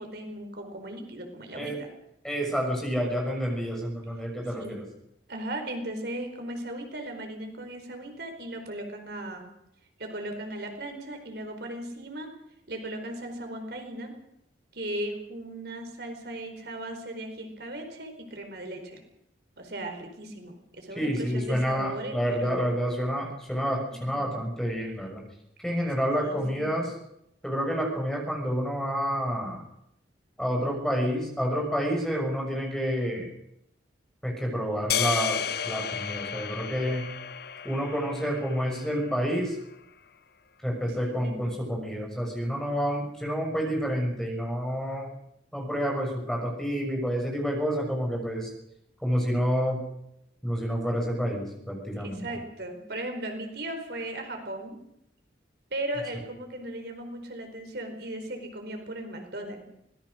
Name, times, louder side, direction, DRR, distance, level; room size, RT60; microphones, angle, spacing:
voice 1, 0.0-1.9 4.5-4.8 5.3-9.5 10.0-12.3 12.7-14.1 14.7-19.0 19.6-22.7 24.1-24.5 26.1-26.8 41.2-41.5 52.0-54.8 55.7-59.6, right 1 dB, 60° right, 4 dB, 4.6 m, -37 dB
voice 2, 2.2-4.8 21.0-25.2 25.6-26.9 27.4-29.6 30.4-33.3 34.2-37.1 37.6-39.6 40.6-45.1 45.5-48.5 49.0-49.8 50.4-52.3, equal, 5° left, 1 dB, 6.3 m, -29 dB
sound 1, 34.9-39.3, left 8 dB, 55° left, 1.0 m, -32 dB
25.0 x 19.5 x 6.5 m, 0.77 s
head